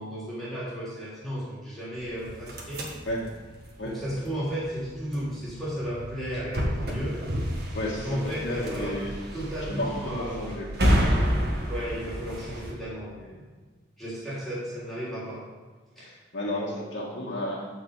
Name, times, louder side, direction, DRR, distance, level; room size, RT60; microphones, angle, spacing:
voice 1, 0.0-2.8 3.8-7.2 8.0-8.9 9.3-10.9 11.7-13.4 14.0-15.4 16.0-16.1, equal, ahead, -10 dB, 3.5 m, -34 dB
sound 1, 2.0-12.7, equal, 55° right, 1.8 m, -30 dB
voice 2, 7.7-9.1 9.7-10.7 16.0-17.7, left 1 dB, 65° left, -4 dB, 1.7 m, -32 dB
10.0 x 4.8 x 7.2 m, 1.4 s
head